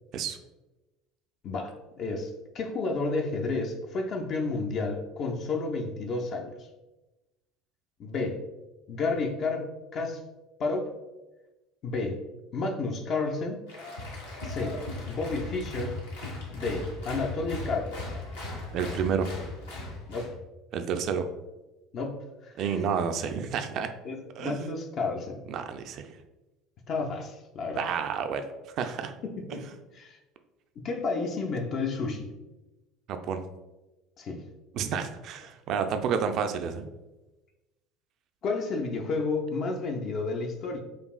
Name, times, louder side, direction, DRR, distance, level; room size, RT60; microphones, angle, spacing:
voice 1, 1.4-6.5 8.0-8.4 8.9-10.2 10.6-10.9 11.8-12.2 12.5-13.6 14.4-14.8 15.1-16.0 16.5-18.0 20.1-20.4 21.9-22.7 23.3-23.5 24.0-25.4 26.9-27.9 29.2-29.6 29.9-30.2 30.8-32.3 34.2-34.4 38.4-40.8, left 3 dB, 45° left, 2 dB, 0.4 m, -31 dB
Applause, 13.7-20.3, left 2 dB, 70° left, 0.8 m, -37 dB
voice 2, 18.7-19.3 20.7-21.3 22.6-23.9 24.4-24.6 25.5-26.1 27.8-28.4 28.8-29.1 29.5-29.6 33.1-33.4 34.7-36.9, right 7 dB, 50° right, 7 dB, 0.3 m, -30 dB
4.9 x 2.3 x 2.3 m, 1.1 s
figure-of-eight pair, 65°, 0 cm